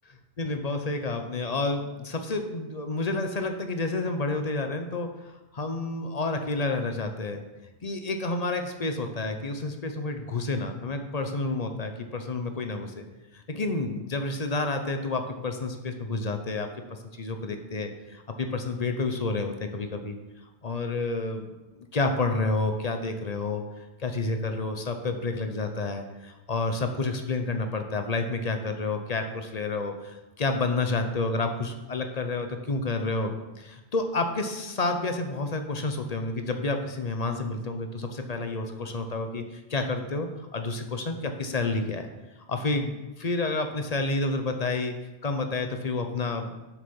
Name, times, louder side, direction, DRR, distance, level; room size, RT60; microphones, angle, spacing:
voice 1, 0.4-7.4 7.8-13.0 13.3-20.2 20.6-42.1 42.5-45.0 45.2-46.6, left 3 dB, 40° left, 6 dB, 0.9 m, -30 dB
7.5 x 6.8 x 5.3 m, 1.0 s
omnidirectional pair, 1.1 m